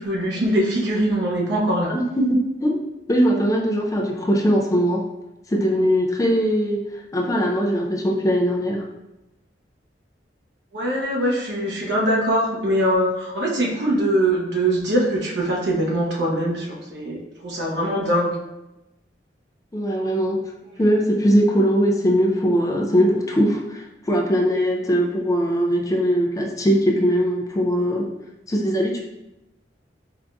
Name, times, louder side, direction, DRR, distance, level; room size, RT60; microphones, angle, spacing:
voice 1, 0.0-1.9 10.7-18.3, right 1 dB, 80° right, -3 dB, 0.9 m, -22 dB
voice 2, 1.9-2.8 3.1-5.1 5.5-6.8 7.1-8.8 19.7-20.4 20.8-28.1 28.5-29.0, equal, 20° left, 0 dB, 0.4 m, -20 dB
4.7 x 2.6 x 2.3 m, 0.96 s
head